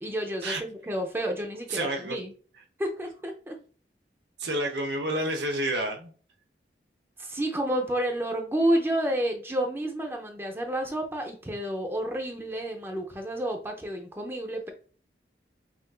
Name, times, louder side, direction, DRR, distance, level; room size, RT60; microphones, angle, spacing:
voice 1, 0.0-2.3 2.8-3.6 7.2-14.7, right 1 dB, 15° right, 2 dB, 0.6 m, -30 dB
voice 2, 1.7-2.2 4.4-6.1, right 1 dB, 80° right, 5 dB, 0.8 m, -29 dB
5.7 x 2.6 x 2.3 m, 0.41 s
head